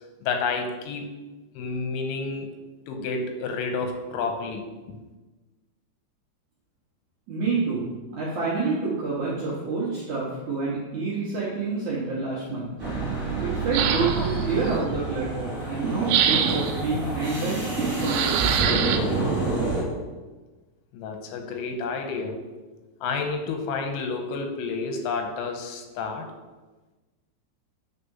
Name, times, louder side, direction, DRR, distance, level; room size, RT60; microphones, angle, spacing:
voice 1, 0.2-1.1 1.6-2.5 2.9-4.7 20.9-22.4 23.0-26.3, left 4 dB, 90° left, 4 dB, 3.2 m, -30 dB
voice 2, 7.3-12.7 13.4-18.5, right 4 dB, 70° right, -7 dB, 1.8 m, -28 dB
sound 1, 12.8-19.8, right 3 dB, 25° right, 2.4 m, -28 dB
sound 2, 13.7-14.4 16.1-16.8 18.0-19.0, right 8 dB, 85° right, 3.0 m, -24 dB
9.3 x 4.2 x 5.5 m, 1.2 s
omnidirectional pair, 5.4 m